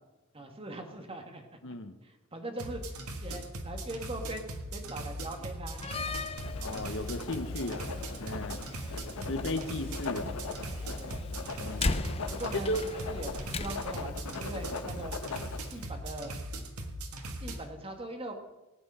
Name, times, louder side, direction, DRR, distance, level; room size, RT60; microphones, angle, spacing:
voice 1, 0.3-1.5 2.0-2.8 3.2-6.3 8.6-8.9 9.2-9.4 10.0-10.1 10.9-11.2 12.3-15.1 15.7-16.4 17.4-18.3, right 2 dB, 25° right, 4 dB, 1.6 m, -41 dB
voice 2, 1.6-1.9 6.6-7.9 8.2-8.6 9.2-10.3 11.6-11.9 12.7-12.8, left 1 dB, 60° left, 10 dB, 1.0 m, -35 dB
sound 1, 2.6-17.6, right 1 dB, 80° right, 1.6 m, -40 dB
Slam, 5.7-14.1, left 3 dB, 25° left, 0.6 m, -38 dB
Writing, 6.4-15.8, left 4 dB, 80° left, 1.1 m, -41 dB
18.0 x 9.4 x 5.6 m, 1.0 s
head